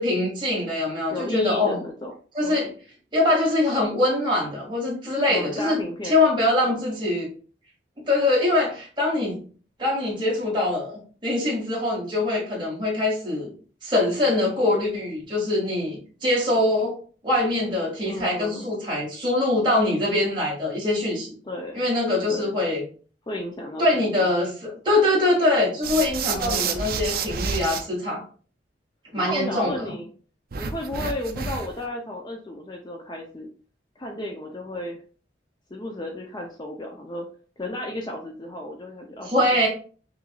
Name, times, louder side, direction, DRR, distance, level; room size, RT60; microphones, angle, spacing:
voice 1, 0.0-1.8 2.3-2.7 3.1-5.8 6.0-7.3 8.1-9.4 9.8-13.5 13.8-17.0 17.2-21.3 21.7-22.8 23.8-28.2 29.1-30.0 39.2-39.7, left 2 dB, 25° right, -5 dB, 1.9 m, -23 dB
voice 2, 1.1-2.1 2.4-2.6 5.3-6.3 6.6-6.9 18.0-18.7 21.4-21.8 22.3-22.5 23.3-24.0 26.3-26.8 29.2-30.1 30.6-33.5 34.0-35.0 35.7-37.3 37.6-39.7, left 1 dB, 25° left, 2 dB, 0.5 m, -33 dB
sound 1, 25.8-27.8 30.5-31.8, right 5 dB, 55° right, 0.5 m, -29 dB
5.7 x 2.6 x 2.3 m, 0.41 s
head